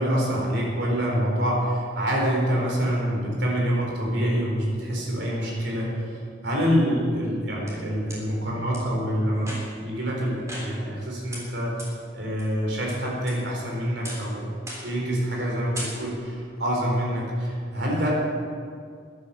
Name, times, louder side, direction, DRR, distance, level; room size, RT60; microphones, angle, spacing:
voice 1, 0.0-5.9 6.4-9.5 9.8-14.5 14.8-18.1, equal, 65° right, -3 dB, 4.3 m, -26 dB
sound 1, 7.2-8.2 8.7-8.8 9.4-9.9 10.5-11.0 11.3-11.4 11.8-11.9 12.4-12.9 13.3-13.7 14.0-14.3 14.7-15.0 15.3-15.5 15.7-16.3, equal, 15° right, 3.6 m, -38 dB
14.0 x 10.5 x 7.1 m, 2.2 s
head